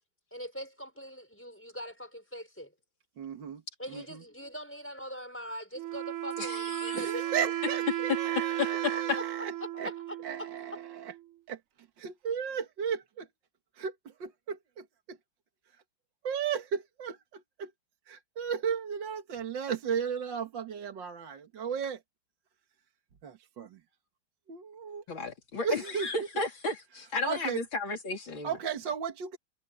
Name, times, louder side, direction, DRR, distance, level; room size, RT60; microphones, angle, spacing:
voice 1, 0.3-2.7 3.8-8.0 8.9-9.2 9.6-10.5, equal, 5° left, 5.8 m, -42 dB
voice 2, 3.2-3.6 3.9-4.2 6.9-9.5 9.8-9.9 10.2-11.1 11.5-11.6 12.0-13.3 13.8-15.2 16.2-17.7 18.1-22.0 23.2-23.8 24.5-25.0 25.6-26.1 27.2-27.6 28.4-29.4, right 7 dB, 65° right, 2.2 m, -35 dB
Wind instrument woodwind instrument, 5.8-11.3, right 13 dB, 90° right, 0.7 m, -34 dB
voice 3, 6.4-7.0 8.4-9.2 25.1-28.5, left 4 dB, 65° left, 4.1 m, -33 dB
omnidirectional pair, 2.3 m